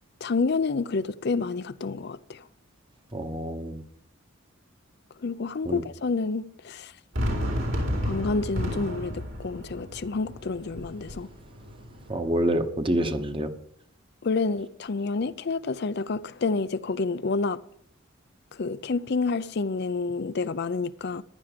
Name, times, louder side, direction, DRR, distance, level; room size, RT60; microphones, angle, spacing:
voice 1, 0.2-2.5 5.2-6.9 8.0-11.3 14.2-17.6 18.5-21.2, left 4 dB, 50° left, 0.5 m, -29 dB
voice 2, 3.1-3.8 5.6-5.8 12.1-13.5, right 1 dB, 25° right, 1.1 m, -27 dB
Fireworks, 7.1-12.2, equal, 65° right, 4.6 m, -32 dB
15.0 x 11.5 x 5.1 m
head